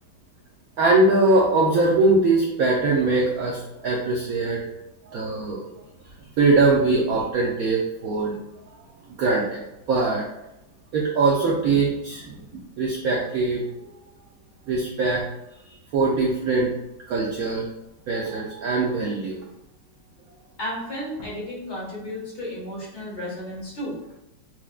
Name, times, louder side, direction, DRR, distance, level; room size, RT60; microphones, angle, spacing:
voice 1, 0.8-4.6 5.0-5.7 6.4-8.4 9.2-9.6 9.9-10.3 10.9-13.6 14.7-15.2 15.9-16.7 17.1-17.7 18.1-19.4, right 3 dB, 75° right, -3 dB, 0.8 m, -22 dB
voice 2, 20.6-24.0, left 1 dB, 45° left, -5 dB, 1.1 m, -33 dB
5.7 x 2.1 x 2.3 m, 0.91 s
omnidirectional pair, 2.0 m